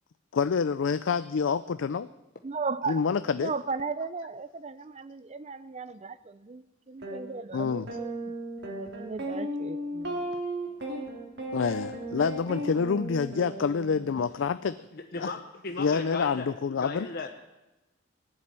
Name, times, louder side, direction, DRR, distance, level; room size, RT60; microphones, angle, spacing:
voice 1, 0.3-2.1 2.9-3.5 7.5-7.9 11.5-14.7 15.2-15.3 15.8-17.1, left 5 dB, 80° left, 0.4 m, -27 dB
voice 2, 2.4-3.0 3.4-8.3 8.6-10.2, right 4 dB, 35° right, 0.5 m, -36 dB
sound 1, 7.0-7.2 7.9-14.2, right 1 dB, 60° right, 2.9 m, -35 dB
voice 3, 14.9-16.5 16.8-17.3, left 3 dB, 55° left, 0.9 m, -36 dB
18.5 x 7.6 x 9.7 m
head